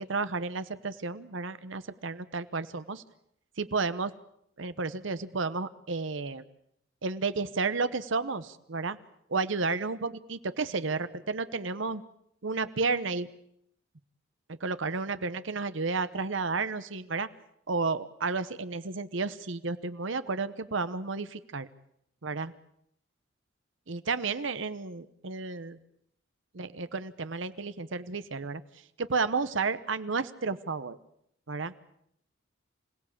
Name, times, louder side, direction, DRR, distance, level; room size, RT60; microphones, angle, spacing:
voice 1, 0.0-3.0 3.6-4.1 4.6-6.4 7.0-9.0 9.3-12.0 12.4-13.3 14.6-17.3 17.7-21.7 22.2-22.5 23.9-25.8 26.5-28.6 29.0-31.0 31.5-31.7, right 4 dB, 70° right, 13 dB, 1.0 m, -32 dB
27.0 x 17.5 x 8.6 m, 0.74 s
head